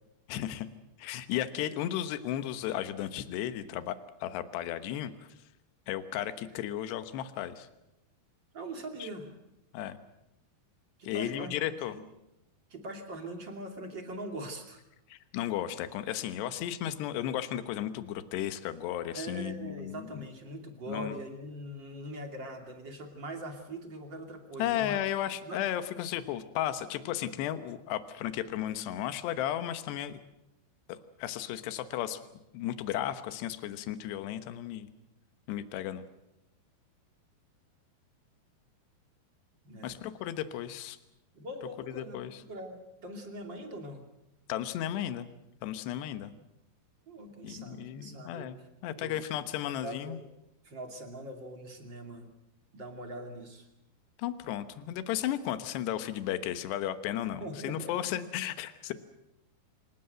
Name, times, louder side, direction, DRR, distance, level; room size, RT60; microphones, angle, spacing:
voice 1, 0.3-0.7 1.0-4.0 4.2-5.1 5.9-7.7 9.0-9.1 9.7-10.0 11.0-12.0 15.1-20.2 20.9-21.2 24.6-30.2 30.9-32.2 32.5-34.9 35.5-36.1 39.8-41.0 41.9-42.4 44.5-45.3 45.6-46.3 47.4-48.6 48.8-50.2 54.2-58.9, left 11 dB, 75° left, 11 dB, 3.3 m, -34 dB
voice 2, 8.5-9.3 11.0-11.6 11.9-12.0 12.7-14.8 19.1-25.1 25.4-25.6 39.6-40.0 41.3-44.1 47.1-48.5 49.0-49.4 49.8-50.2 50.6-52.3 52.7-53.7 57.4-58.2, right 1 dB, 30° right, 4 dB, 2.7 m, -42 dB
26.0 x 19.0 x 7.9 m, 0.90 s
omnidirectional pair, 4.9 m